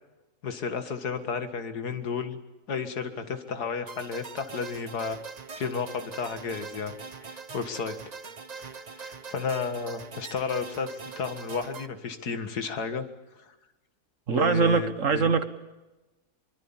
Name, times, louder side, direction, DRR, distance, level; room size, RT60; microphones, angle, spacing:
voice 1, 0.4-2.4 2.7-5.2 5.5-6.9 7.2-8.0 9.0-13.1 13.4-13.5 14.3-15.4, left 5 dB, 90° left, 9 dB, 2.3 m, -32 dB
Wind instrument woodwind instrument, 2.9-13.3, right 3 dB, 40° left, 7.2 m, -56 dB
sound 1, 3.9-11.9, right 5 dB, 30° right, 0.8 m, -42 dB
voice 2, 14.3-15.4, right 5 dB, 55° right, 12 dB, 1.6 m, -23 dB
24.0 x 23.0 x 7.3 m, 1.1 s
omnidirectional pair, 1.6 m